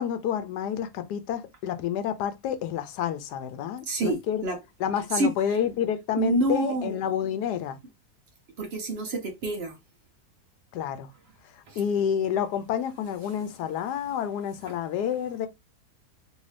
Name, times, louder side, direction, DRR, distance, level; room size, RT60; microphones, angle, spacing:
voice 1, 0.0-4.4 4.8-7.8 10.7-11.1 11.8-15.5, left 9 dB, 85° left, 1.2 m, -29 dB
voice 2, 3.9-4.6 5.1-5.6 6.2-7.0 8.6-9.8 11.7-11.8 14.7-14.8, right 2 dB, 55° right, 0.8 m, -28 dB
3.1 x 2.7 x 3.2 m
omnidirectional pair, 1.7 m